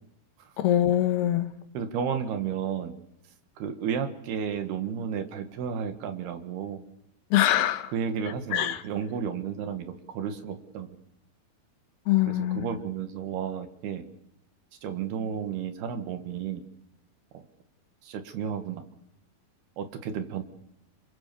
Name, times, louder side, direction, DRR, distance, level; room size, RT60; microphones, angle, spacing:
voice 1, 0.6-1.5 7.3-7.9 8.5-8.8 12.1-12.8, left 12 dB, 85° left, 11 dB, 3.2 m, -24 dB
voice 2, 1.7-3.0 3.6-6.8 7.9-11.0 12.3-14.0 14.8-16.6 17.3-17.4 18.0-18.8 19.8-20.4, right 7 dB, 80° right, 9 dB, 3.9 m, -32 dB
27.5 x 24.5 x 7.1 m, 0.79 s
omnidirectional pair, 4.6 m